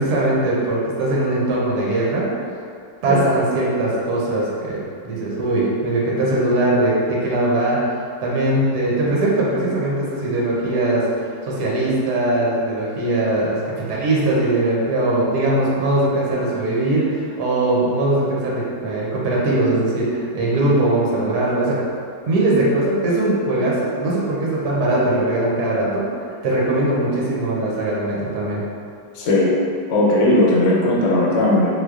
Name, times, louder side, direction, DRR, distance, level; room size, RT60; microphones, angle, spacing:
voice 1, 0.0-2.3 3.0-21.8 22.3-26.0 26.4-28.6, right 1 dB, 65° right, -5 dB, 1.1 m, -20 dB
voice 2, 29.2-29.5 29.9-31.7, left 1 dB, 80° left, -4 dB, 1.3 m, -17 dB
3.6 x 3.0 x 2.3 m, 2.3 s
omnidirectional pair, 2.0 m